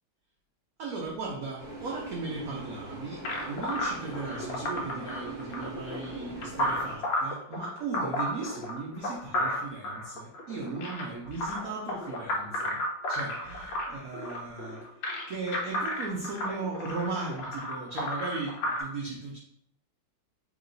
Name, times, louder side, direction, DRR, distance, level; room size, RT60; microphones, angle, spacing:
voice 1, 0.8-12.8 13.1-19.4, right 3 dB, 90° right, -1 dB, 0.7 m, -37 dB
sound 1, 1.6-6.9, right 2 dB, 50° right, 1.0 m, -42 dB
sound 2, 3.2-18.8, left 1 dB, 70° left, 1.3 m, -33 dB
3.0 x 2.9 x 3.8 m, 0.73 s
omnidirectional pair, 2.2 m